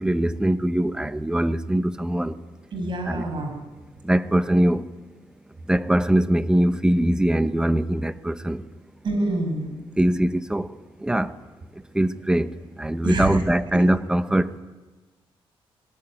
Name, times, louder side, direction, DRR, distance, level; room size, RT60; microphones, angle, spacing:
voice 1, 0.0-2.4 3.1-3.3 4.0-4.9 5.7-8.6 10.0-10.7 11.0-11.3 11.9-12.5 12.8-14.5, right 1 dB, 10° right, 1.1 m, -22 dB
voice 2, 2.7-3.5 9.0-9.8 13.0-13.4, right 2 dB, 55° right, 6.9 m, -26 dB
22.0 x 21.0 x 9.9 m
cardioid pair, 110°, 10 cm